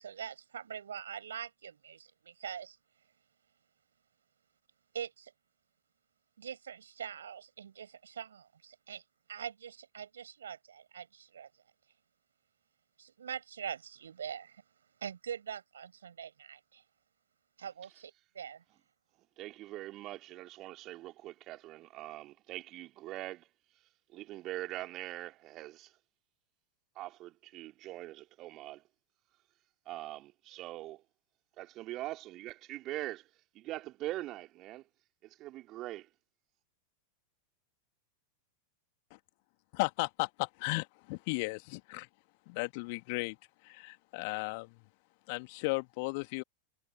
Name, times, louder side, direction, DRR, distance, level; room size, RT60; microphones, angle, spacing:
voice 1, 0.0-2.8 4.9-5.3 6.4-9.0 9.3-11.5 13.0-14.6 15.0-16.8 17.6-18.6, right 8 dB, 65° right, 7.7 m, -43 dB
voice 2, 19.4-23.5 24.1-25.9 26.9-28.8 29.8-31.0 31.6-33.3 33.5-34.8 35.2-36.1, right 16 dB, 35° right, 3.6 m, -42 dB
voice 3, 39.7-42.1 42.5-43.4 43.6-44.7 45.3-46.4, left 29 dB, 45° left, 2.4 m, -35 dB
figure-of-eight pair, 90°, 0 cm